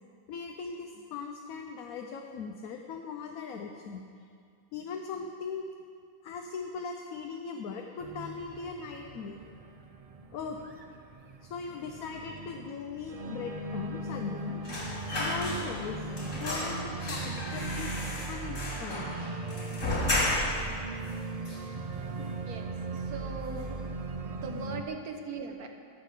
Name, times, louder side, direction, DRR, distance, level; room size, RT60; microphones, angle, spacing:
voice 1, 0.3-4.0 4.7-5.6 6.2-9.4 10.3-10.6 11.4-14.6 15.2-16.1 16.3-17.9 18.3-19.1 23.8-23.9, left 5 dB, 75° left, 3 dB, 1.2 m, -39 dB
Organ, 8.0-24.8, right 2 dB, 60° right, 0.3 m, -39 dB
sound 1, 14.6-15.9 16.2-20.7 21.1-21.2 21.5-22.3 22.6-22.8 23.1-23.8 24.1-24.3, left 1 dB, 55° left, 3.0 m, -33 dB
voice 2, 22.2-23.8 24.3-25.7, right 5 dB, 75° right, 4 dB, 1.5 m, -41 dB
12.5 x 6.6 x 8.3 m, 2.3 s
omnidirectional pair, 1.5 m